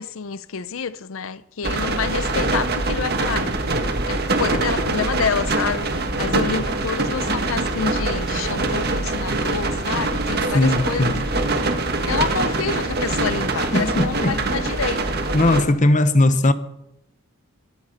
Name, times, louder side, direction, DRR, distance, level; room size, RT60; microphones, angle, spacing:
voice 1, 0.0-3.5 4.1-11.4 12.1-15.1 16.4-16.5, left 6 dB, 65° left, 0.6 m, -28 dB
sound 1, 1.6-15.6, right 2 dB, 45° right, 1.7 m, -24 dB
voice 2, 10.5-11.2 13.7-14.4 15.3-16.5, left 2 dB, 35° left, 0.9 m, -18 dB
23.5 x 13.0 x 4.2 m
head